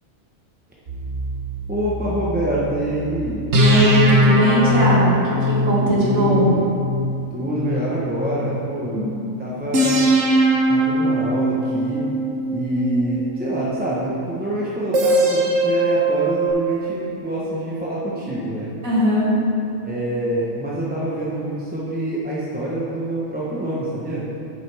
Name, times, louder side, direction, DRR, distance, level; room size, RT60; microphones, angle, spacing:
sound 1, 0.9-2.9 3.5-8.7 9.7-14.0 14.9-16.5, right 1 dB, 60° right, 1.4 m, -21 dB
voice 1, 1.7-3.5 5.9-6.7 7.3-9.0 9.4-10.2 10.7-12.0 12.5-18.7 19.8-24.3, right 1 dB, 10° right, -7 dB, 0.9 m, -26 dB
voice 2, 3.5-6.5 8.9-9.1 18.8-19.3, equal, 75° right, -7 dB, 2.5 m, -19 dB
9.1 x 8.2 x 3.5 m, 2.6 s
omnidirectional pair, 1.4 m